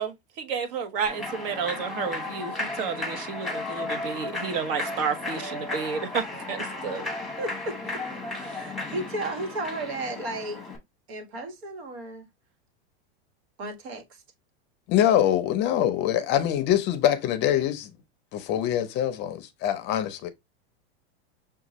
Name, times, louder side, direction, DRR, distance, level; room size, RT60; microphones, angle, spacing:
voice 1, 0.0-7.0, right 6 dB, 60° right, 1.1 m, -31 dB
Human voice / Clapping / Cheering, 1.0-10.8, left 2 dB, ahead, 1.0 m, -34 dB
voice 2, 7.4-8.0 8.3-10.6 11.1-12.3 13.6-14.2, right 2 dB, 75° right, 1.4 m, -34 dB
voice 3, 14.9-17.9 18.3-20.3, left 11 dB, 35° left, 0.5 m, -24 dB
6.2 x 2.3 x 2.9 m
supercardioid pair, 145°, 31 cm